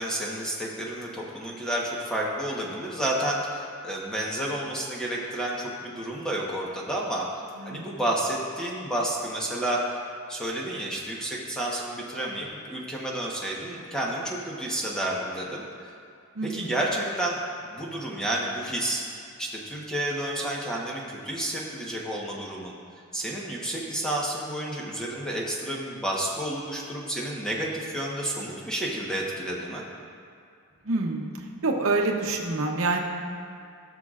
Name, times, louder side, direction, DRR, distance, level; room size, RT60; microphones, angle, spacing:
voice 1, 0.0-7.3 7.6-9.8 10.3-15.9 16.4-17.4 17.6-19.1 19.4-22.7 23.1-29.8, right 1 dB, 5° left, -4 dB, 1.1 m, -30 dB
voice 2, 7.6-8.0 16.4-16.7 30.8-31.3 31.6-33.0, right 3 dB, 70° right, 1 dB, 0.9 m, -27 dB
17.0 x 6.6 x 2.5 m, 2.3 s
head